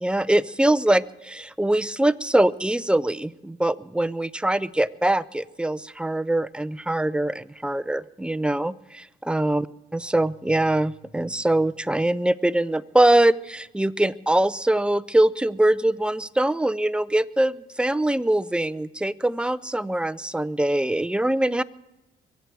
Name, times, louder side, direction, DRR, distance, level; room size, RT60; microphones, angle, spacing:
voice 1, 0.0-9.7 9.9-21.6, right 1 dB, 5° right, 16 dB, 0.4 m, -23 dB
23.0 x 8.3 x 6.2 m, 0.98 s
cardioid pair, 90°, 20 cm